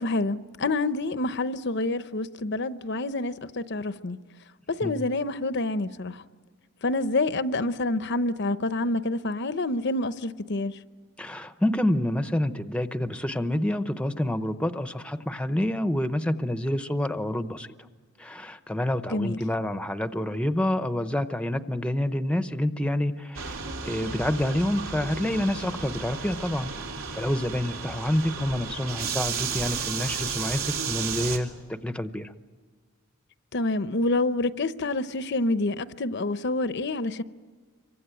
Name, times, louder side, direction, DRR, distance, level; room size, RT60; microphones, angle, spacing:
voice 1, 0.0-4.2 4.7-6.2 6.8-10.8 19.1-19.4 33.5-37.2, left 2 dB, 55° left, 0.8 m, -27 dB
voice 2, 11.2-17.7 18.2-23.6 23.9-26.7 27.1-32.3, left 1 dB, 5° left, 0.8 m, -28 dB
sound 1, 23.3-31.4, right 6 dB, 75° right, 3.4 m, -33 dB
27.0 x 24.0 x 9.0 m
head